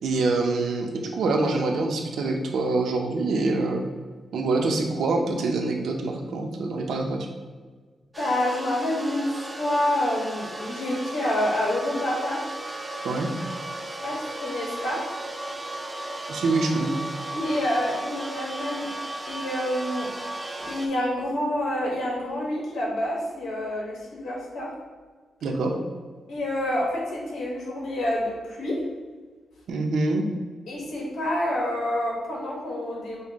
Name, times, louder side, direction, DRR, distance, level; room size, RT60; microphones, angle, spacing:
voice 1, 0.0-3.8 4.3-7.2 13.0-13.3 16.3-17.0 25.4-25.7 29.7-30.3, right 3 dB, 80° right, 3 dB, 0.6 m, -25 dB
sound 1, 8.1-20.9, right 1 dB, 10° right, 0.4 m, -35 dB
voice 2, 8.2-12.4 14.0-15.0 17.3-18.9 19.3-20.1 20.6-24.7 26.3-28.8 30.7-33.2, left 1 dB, 80° left, -3 dB, 1.3 m, -28 dB
5.4 x 2.1 x 3.5 m, 1.4 s
wide cardioid pair, 125°, 0 cm